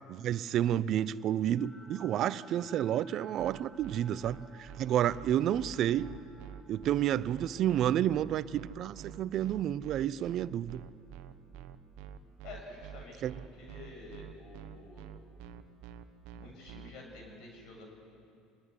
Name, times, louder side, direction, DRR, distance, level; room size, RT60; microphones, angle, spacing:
voice 1, 0.1-6.1 6.7-10.8 13.2-13.4, right 11 dB, 55° right, 18 dB, 0.7 m, -30 dB
sound 1, 1.0-11.2, left 1 dB, 25° left, 5.3 m, -56 dB
sound 2, 3.4-16.9, right 9 dB, 70° right, 1.2 m, -47 dB
voice 2, 12.4-15.1 16.3-17.9, left 2 dB, 65° left, 1 dB, 7.3 m, -49 dB
24.5 x 21.0 x 9.8 m, 2.7 s
hypercardioid pair, 75°, 0 cm